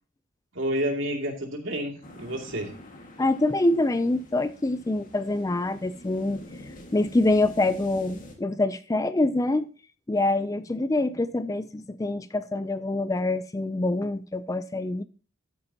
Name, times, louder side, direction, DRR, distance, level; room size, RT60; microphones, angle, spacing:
voice 1, 0.5-2.7, equal, 65° right, 2.6 m, -29 dB
sound 1, 2.0-8.4, left 1 dB, 40° left, 1.9 m, -46 dB
voice 2, 3.2-6.4 6.9-9.7 10.1-15.0, left 2 dB, 15° left, 0.4 m, -25 dB
12.5 x 8.8 x 2.9 m
head